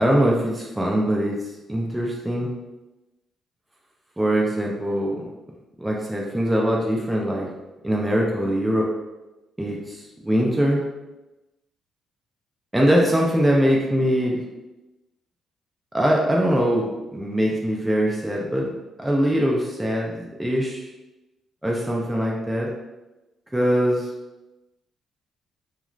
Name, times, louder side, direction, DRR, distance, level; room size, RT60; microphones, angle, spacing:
voice 1, 0.0-1.4 1.7-2.5 4.2-5.3 5.8-7.5 7.8-8.9 9.6-10.8 12.7-14.4 15.9-20.9 21.6-22.7 23.5-24.1, equal, 5° right, -2 dB, 0.4 m, -22 dB
2.4 x 2.3 x 3.0 m, 1.0 s
cardioid pair, 120°, 0 cm